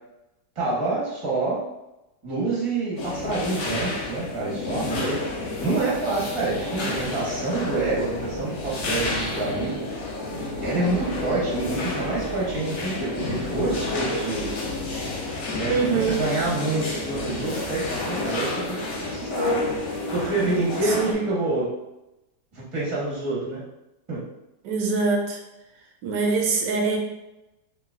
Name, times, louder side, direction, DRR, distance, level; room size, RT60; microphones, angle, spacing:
voice 1, 0.5-1.6 2.2-5.2 5.6-9.9 10.6-14.6 15.5-18.5 19.1-19.6 20.1-21.7 22.5-23.6 24.1-24.2, right 2 dB, 20° right, -7 dB, 1.0 m, -27 dB
sound 1, 3.0-21.1, left 2 dB, 75° left, 1.4 m, -30 dB
sound 2, 10.2-21.3, left 1 dB, 40° left, 0.7 m, -39 dB
voice 2, 15.7-16.2 21.0-21.2 24.6-25.4 26.0-27.0, right 4 dB, 85° right, 1 dB, 1.3 m, -23 dB
3.9 x 2.8 x 2.4 m, 0.93 s
omnidirectional pair, 1.9 m